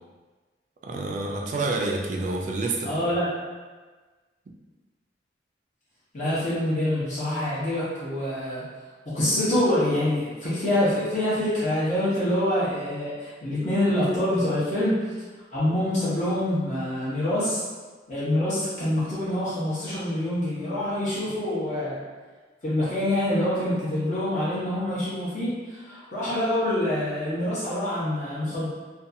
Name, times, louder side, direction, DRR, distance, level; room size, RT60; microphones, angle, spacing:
voice 1, 0.8-3.2, right 2 dB, 45° right, 0 dB, 0.3 m, -28 dB
voice 2, 2.8-3.3 6.1-8.6 9.1-14.9 15.5-17.6 18.1-22.0 22.6-28.7, left 1 dB, 40° left, -11 dB, 0.8 m, -26 dB
2.6 x 2.3 x 2.6 m, 1.3 s
head